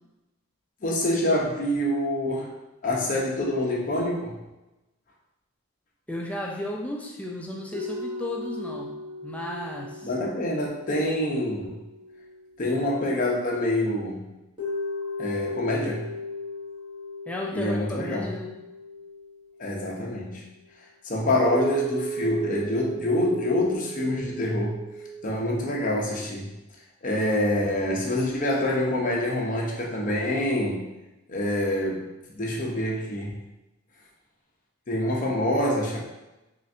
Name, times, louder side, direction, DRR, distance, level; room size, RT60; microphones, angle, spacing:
voice 1, 0.8-2.5 2.8-4.4 10.0-11.8 12.6-14.2 15.2-16.1 17.5-18.3 19.6-20.4 21.0-24.8 25.2-26.5 27.0-30.8 31.3-32.1 32.3-33.3 34.9-36.0, left 1 dB, 40° left, -2 dB, 0.7 m, -26 dB
voice 2, 6.1-8.9 9.2-10.1 17.3-18.5, left 1 dB, 5° left, 0 dB, 0.3 m, -34 dB
sound 1, 7.7-13.2 14.6-20.0 21.4-25.3, right 1 dB, 20° right, 1.1 m, -36 dB
4.0 x 3.2 x 2.6 m, 1.0 s
head